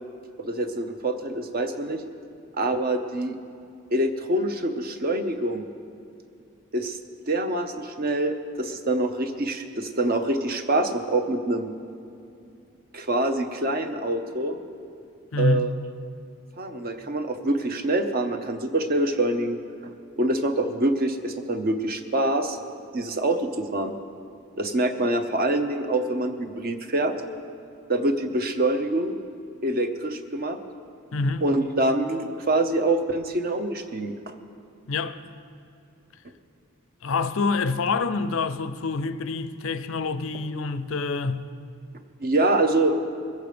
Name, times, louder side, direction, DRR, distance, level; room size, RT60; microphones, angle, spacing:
voice 1, 0.4-2.0 2.6-3.4 3.9-5.6 6.7-7.0 7.3-11.7 12.9-14.6 15.4-15.7 16.6-19.6 20.2-22.6 22.9-23.9 24.6-27.1 27.9-29.1 29.6-30.6 31.4-34.3 42.2-42.9, right 1 dB, 40° right, 0.8 m, -25 dB
voice 2, 15.3-15.7 31.1-31.5 34.9-35.2 37.0-41.5, left 4 dB, 65° left, 0.5 m, -26 dB
21.0 x 8.0 x 5.1 m
head